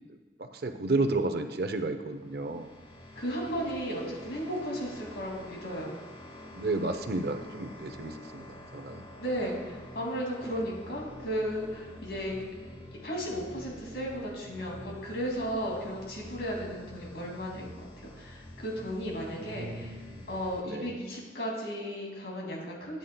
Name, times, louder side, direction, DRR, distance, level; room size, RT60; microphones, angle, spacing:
voice 1, 0.4-2.7 6.5-8.5 8.7-9.0 19.4-20.3 20.7-21.0, right 2 dB, 60° right, 8 dB, 0.6 m, -32 dB
sound 1, 2.1-20.6, left 1 dB, 30° left, 0.8 m, -48 dB
voice 2, 3.2-5.9 9.2-12.4 13.0-20.0 20.3-23.0, equal, 75° left, -2 dB, 2.3 m, -35 dB
12.5 x 9.3 x 2.2 m, 1.3 s
head